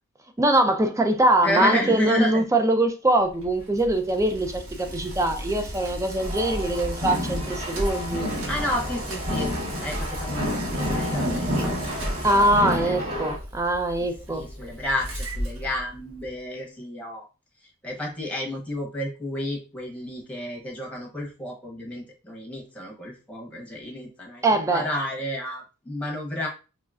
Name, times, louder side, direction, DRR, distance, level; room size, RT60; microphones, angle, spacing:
voice 1, 0.4-8.3 12.2-14.4 24.4-24.8, right 1 dB, 15° right, 0.4 m, -22 dB
voice 2, 1.4-2.4 8.5-13.0 14.0-17.3 17.6-26.5, left 1 dB, 5° left, 0.9 m, -31 dB
Bicycle, 3.2-16.4, equal, 70° right, 1.0 m, -35 dB
sound 1, 6.2-13.4, left 1 dB, 30° right, 1.0 m, -30 dB
3.6 x 3.1 x 2.4 m
head